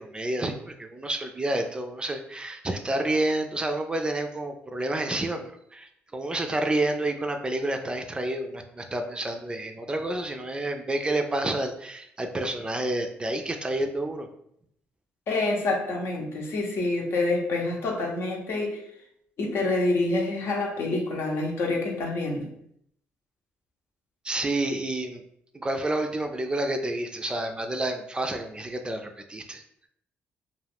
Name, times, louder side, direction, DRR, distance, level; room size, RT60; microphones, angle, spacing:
voice 1, 0.0-14.3 24.2-25.2 25.5-29.6, right 1 dB, 20° right, 5 dB, 0.4 m, -29 dB
voice 2, 15.3-18.8 19.4-22.5, left 2 dB, 65° left, 1 dB, 0.7 m, -27 dB
2.4 x 2.3 x 3.4 m, 0.71 s
cardioid pair, 75°, 5 cm